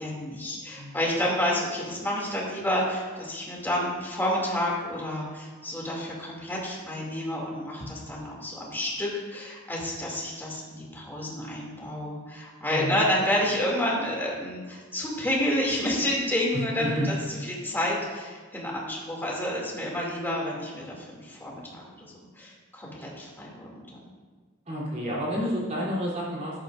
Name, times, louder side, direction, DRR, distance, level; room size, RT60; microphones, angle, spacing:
voice 1, 0.0-17.1 17.5-21.6 22.1-24.1, left 1 dB, 10° left, -4 dB, 2.6 m, -29 dB
voice 2, 16.5-17.0 24.6-26.6, equal, 35° right, -6 dB, 3.3 m, -30 dB
14.0 x 11.0 x 2.6 m, 1.4 s
head